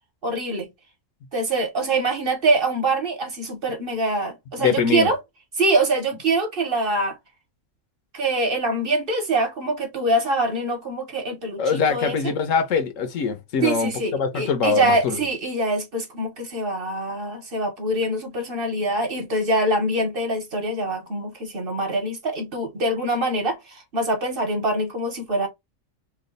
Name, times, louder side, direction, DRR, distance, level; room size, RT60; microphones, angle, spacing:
voice 1, 0.2-0.7 1.3-5.2 5.6-7.2 8.1-12.3 13.6-25.5, right 2 dB, 45° right, 1.1 m, -24 dB
voice 2, 4.6-5.1 11.6-15.2, left 5 dB, 75° left, 1.1 m, -23 dB
3.1 x 2.3 x 3.7 m
omnidirectional pair, 1.4 m